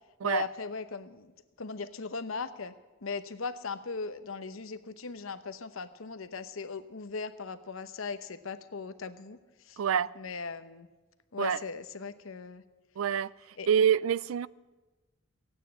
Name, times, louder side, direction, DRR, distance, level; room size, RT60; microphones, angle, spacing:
voice 1, 0.2-1.3 1.6-2.7 3.0-9.4 9.6-9.8 10.2-10.9 11.3-12.6 13.6-13.7, left 4 dB, 75° left, 0.8 m, -38 dB
voice 2, 9.8-10.2 11.4-11.6 13.0-14.5, right 8 dB, 75° right, 0.4 m, -27 dB
15.5 x 9.1 x 8.7 m
head